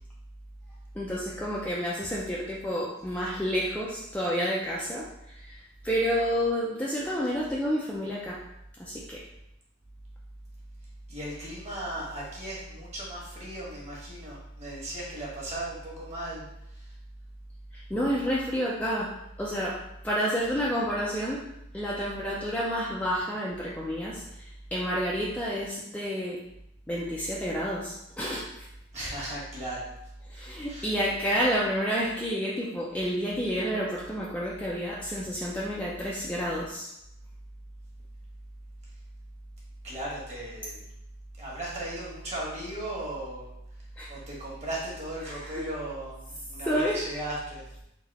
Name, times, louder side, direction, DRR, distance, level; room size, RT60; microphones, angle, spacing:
voice 1, 1.0-5.0 5.5-5.6 5.8-8.4 8.8-9.2 17.7-19.1 19.4-19.8 20.0-21.4 21.7-24.2 24.7-26.4 26.9-28.4 30.3-36.9 44.0-44.1 45.3-45.7 46.6-47.0, equal, 5° left, -5 dB, 0.4 m, -29 dB
voice 2, 11.1-16.9 28.9-29.9 30.7-30.9 39.8-40.8 41.4-43.5 44.1-47.6, right 1 dB, 35° right, -5 dB, 1.5 m, -36 dB
4.0 x 2.8 x 4.1 m, 0.82 s
head